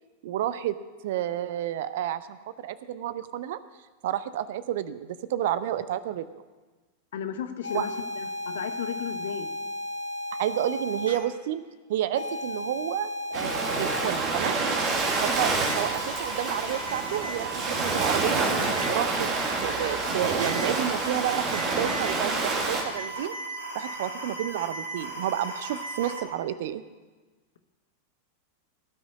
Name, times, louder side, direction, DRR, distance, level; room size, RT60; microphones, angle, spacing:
voice 1, 0.2-0.8 1.0-3.6 4.0-6.4 7.7-7.8 10.4-11.6 11.9-14.6 15.2-18.5 18.9-19.3 19.6-23.3 23.7-26.8, right 12 dB, 55° right, 15 dB, 0.6 m, -30 dB
voice 2, 7.1-9.5, left 9 dB, 60° left, 9 dB, 1.0 m, -34 dB
sound 1, 7.6-11.2 12.1-26.2, equal, 85° right, 2.3 m, -36 dB
Ocean, 13.3-22.8, right 3 dB, 35° right, 1.9 m, -28 dB
17.0 x 6.2 x 8.2 m, 1.3 s
figure-of-eight pair, 90°, 0 cm